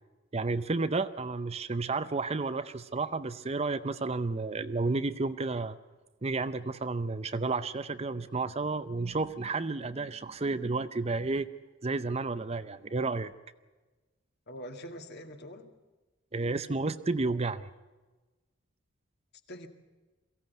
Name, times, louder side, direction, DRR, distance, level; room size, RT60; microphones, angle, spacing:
voice 1, 0.3-5.8 6.2-11.5 11.8-13.3 16.3-17.7, right 3 dB, 30° right, 12 dB, 0.6 m, -31 dB
voice 2, 14.5-15.7 19.5-19.7, equal, 55° left, 6 dB, 2.1 m, -44 dB
23.0 x 16.0 x 9.3 m, 1.2 s
head